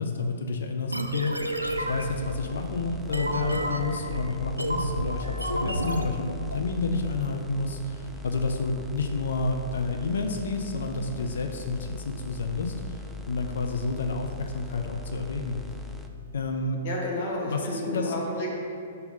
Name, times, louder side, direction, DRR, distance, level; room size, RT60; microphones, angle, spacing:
voice 1, 0.0-14.3 14.5-15.6 16.3-16.8 17.5-18.1, left 3 dB, 65° left, 4 dB, 0.5 m, -30 dB
sound 1, 0.9-6.6, right 1 dB, 90° right, 0.4 m, -31 dB
sound 2, 1.6-16.1, left 2 dB, ahead, 0.4 m, -40 dB
voice 2, 16.8-18.5, left 1 dB, 45° left, -4 dB, 1.4 m, -31 dB
5.5 x 4.0 x 5.3 m, 2.5 s
figure-of-eight pair, 110°, 0 cm